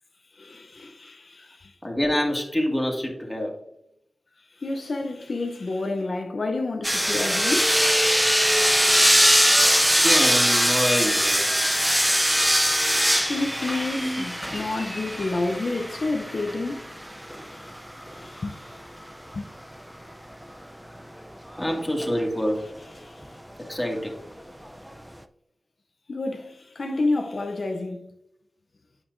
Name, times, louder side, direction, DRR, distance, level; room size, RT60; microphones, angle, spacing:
voice 1, 0.3-1.7 4.6-7.8 8.7-10.0 12.7-17.0 17.4-17.7 18.0-18.7 19.3-19.5 22.9-23.3 26.1-28.1, left 2 dB, 60° left, 0.7 m, -30 dB
voice 2, 1.8-3.5 10.0-11.5 14.0-14.2 21.6-22.6 23.7-24.2 26.9-27.0, equal, 15° left, 2.0 m, -26 dB
sound 1, 6.8-18.2 21.5-22.1 23.2-23.3, equal, 5° right, 0.5 m, -22 dB
8.6 x 5.8 x 2.6 m
cardioid pair, 50°, 0 cm